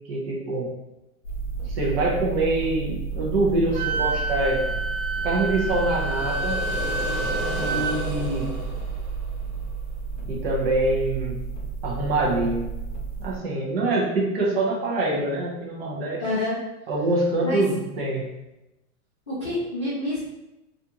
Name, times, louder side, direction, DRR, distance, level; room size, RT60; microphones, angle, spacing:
voice 1, 0.1-0.7 1.7-4.7 5.2-6.6 7.6-8.5 10.3-11.4 11.8-12.7 13.2-16.2 16.9-18.3, right 2 dB, 45° right, -3 dB, 0.6 m, -25 dB
sound 1, 1.2-13.4, right 5 dB, 50° left, 0.7 m, -32 dB
Wind instrument woodwind instrument, 3.7-8.0, right 2 dB, 85° right, 0.5 m, -29 dB
sound 2, 5.6-9.6, left 1 dB, 65° right, 1.1 m, -33 dB
voice 2, 16.2-16.6 17.4-17.6 19.3-20.2, left 2 dB, 25° left, -14 dB, 0.3 m, -27 dB
2.5 x 2.3 x 2.7 m, 0.95 s
supercardioid pair, 170°, 44 cm